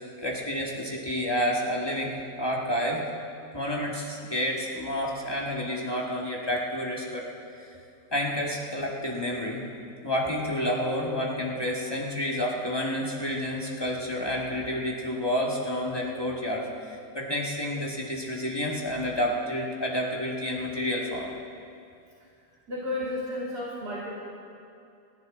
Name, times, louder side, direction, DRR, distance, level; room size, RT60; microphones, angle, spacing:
voice 1, 0.2-3.0 3.5-7.2 8.1-9.6 10.0-16.7 17.1-21.3, equal, 15° left, -3 dB, 1.9 m, -29 dB
voice 2, 22.7-24.1, left 1 dB, 70° right, -7 dB, 3.5 m, -32 dB
29.0 x 10.5 x 3.9 m, 2.6 s
omnidirectional pair, 1.8 m